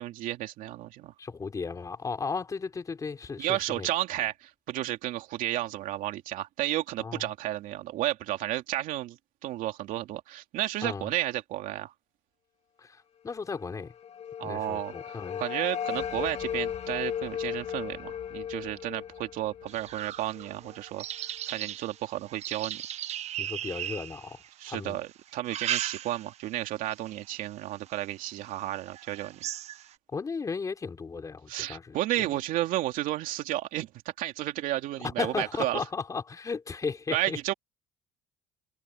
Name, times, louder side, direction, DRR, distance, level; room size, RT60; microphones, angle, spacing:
voice 1, 0.0-1.1 3.4-11.9 14.4-22.8 24.6-29.4 31.5-35.8 37.1-37.5, right 15 dB, 70° right, 2.8 m, -32 dB
voice 2, 1.2-3.9 7.0-7.2 10.8-11.1 12.8-13.9 14.4-15.4 23.4-25.0 30.1-31.9 32.2-32.4 35.0-37.4, left 5 dB, 25° left, 3.8 m, -35 dB
sound 1, 13.7-20.7, left 9 dB, 45° left, 2.5 m, -36 dB
sound 2, 19.7-24.7 25.3-26.5 26.9-27.3 27.9-28.0 28.4-28.5 28.9-29.9, right 11 dB, 50° right, 1.1 m, -37 dB
cardioid pair, 130°, 15 cm